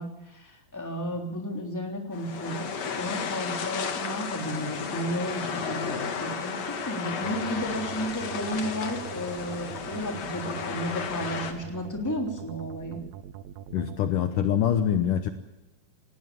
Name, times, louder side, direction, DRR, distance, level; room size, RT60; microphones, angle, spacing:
voice 1, 0.0-13.0, equal, 5° left, 2 dB, 2.7 m, -33 dB
sound 1, 2.1-11.5, left 6 dB, 50° left, 2.6 m, -33 dB
sound 2, 7.2-14.1, right 10 dB, 75° right, 1.7 m, -43 dB
voice 2, 13.7-15.3, left 9 dB, 70° left, 8 dB, 2.3 m, -24 dB
19.0 x 18.0 x 8.7 m, 1.0 s
omnidirectional pair, 4.4 m